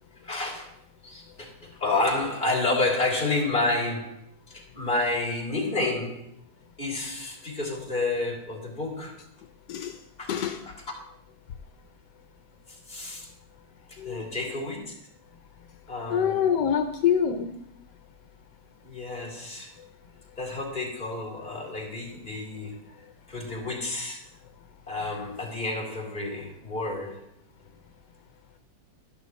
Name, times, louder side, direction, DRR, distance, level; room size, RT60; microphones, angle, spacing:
voice 1, 0.2-0.7 1.0-4.2 4.5-6.3 6.8-9.2 10.2-10.3 10.6-10.7 12.7-13.3 13.9-15.1 15.9-16.4 18.8-19.7 20.4-22.7 23.3-24.3 24.9-27.3, left 2 dB, 25° left, -3 dB, 3.6 m, -30 dB
voice 2, 9.7-10.0 10.3-10.7 14.0-14.2 16.1-17.5 19.8-19.9, left 8 dB, 80° left, 6 dB, 1.3 m, -25 dB
12.0 x 11.5 x 3.1 m, 0.73 s
omnidirectional pair, 1.8 m